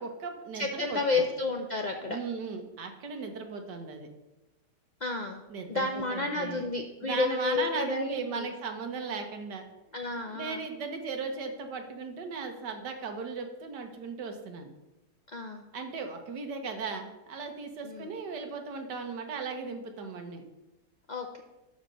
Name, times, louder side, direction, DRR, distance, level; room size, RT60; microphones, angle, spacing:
voice 1, 0.0-1.3 2.0-4.1 5.5-6.6 7.0-9.6 10.3-14.7 15.7-20.4, right 4 dB, 90° right, 5 dB, 1.8 m, -37 dB
voice 2, 0.5-2.2 5.0-5.4 5.7-8.5 9.9-10.7 15.3-15.6 17.8-18.1 21.1-21.4, left 3 dB, 65° left, 3 dB, 0.4 m, -31 dB
12.5 x 4.3 x 6.5 m, 1.0 s
omnidirectional pair, 1.8 m